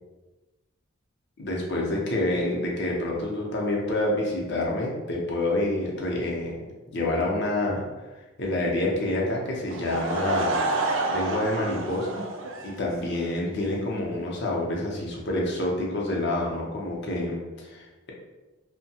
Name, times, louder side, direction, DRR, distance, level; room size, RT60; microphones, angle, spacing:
voice 1, 1.4-6.5 6.9-7.8 8.4-12.2 12.6-18.1, left 1 dB, 55° left, -2 dB, 0.6 m, -28 dB
Laughter / Crowd, 9.7-13.2, right 2 dB, 60° right, 0.3 m, -28 dB
2.6 x 2.1 x 2.7 m, 1.2 s
head